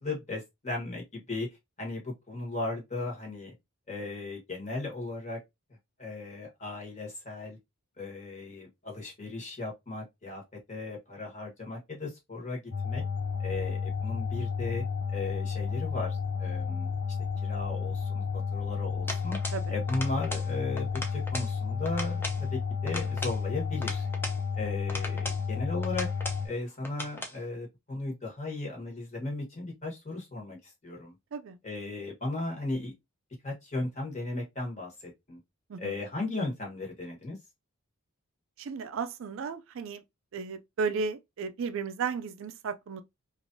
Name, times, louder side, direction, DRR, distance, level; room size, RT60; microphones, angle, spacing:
voice 1, 0.0-1.5 1.8-3.5 3.9-5.4 6.0-7.6 8.0-10.4 10.7-13.0 13.4-14.8 15.1-16.9 17.4-19.4 19.7-24.1 24.5-26.1 26.4-31.1 31.6-32.9 33.4-35.4 35.8-37.4, left 2 dB, 30° left, 1.2 m, -36 dB
sound 1, 12.7-26.5, left 5 dB, 80° left, 0.6 m, -32 dB
sound 2, 19.1-19.6 19.9-20.5 20.8-21.5 21.8-22.4 22.9-24.4 24.9-25.4 25.8-26.4 26.8-27.4, left 1 dB, 10° left, 0.5 m, -38 dB
voice 2, 38.6-40.0 40.3-43.0, right 5 dB, 60° right, 0.4 m, -34 dB
3.0 x 2.5 x 2.6 m
head